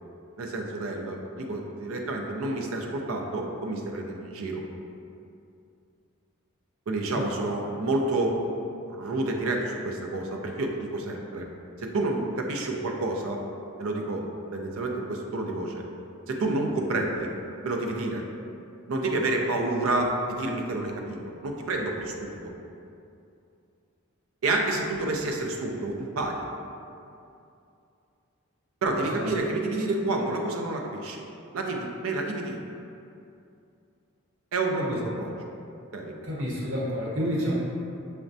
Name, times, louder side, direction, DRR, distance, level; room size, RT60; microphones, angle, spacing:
voice 1, 0.4-4.6 6.9-8.4 8.9-11.4 11.8-13.4 13.8-14.2 14.5-15.8 16.3-17.3 17.6-18.2 18.9-22.3 24.4-26.4 28.8-31.2 31.5-32.6 34.5-34.9 35.2-35.3 35.9-36.1, right 2 dB, 75° right, 1 dB, 0.4 m, -29 dB
voice 2, 36.2-37.5, equal, 60° right, -7 dB, 1.0 m, -29 dB
5.9 x 2.1 x 2.6 m, 2.6 s
head